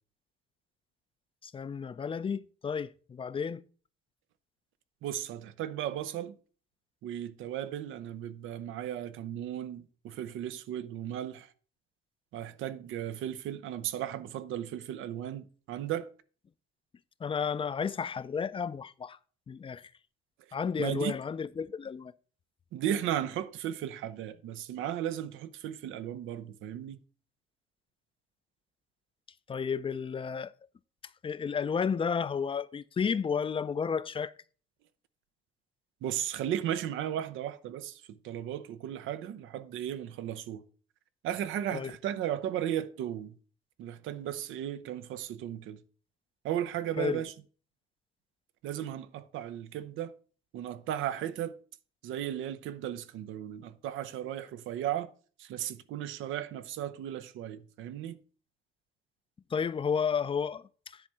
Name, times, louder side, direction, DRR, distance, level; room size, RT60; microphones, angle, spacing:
voice 1, 1.4-3.6 17.2-19.2 19.5-19.9 20.5-22.1 29.5-30.5 31.2-34.3 41.7-41.9 47.0-47.2 59.5-61.0, left 6 dB, 25° left, 0.4 m, -32 dB
voice 2, 5.0-6.4 7.0-11.5 12.3-16.1 20.8-21.2 22.7-27.0 36.0-40.6 41.2-43.3 43.8-45.8 46.4-47.3 48.6-50.1 50.5-51.6 52.0-55.1 55.4-58.2, right 11 dB, 90° right, 0.6 m, -35 dB
10.0 x 3.5 x 5.5 m
cardioid pair, 90°, 20 cm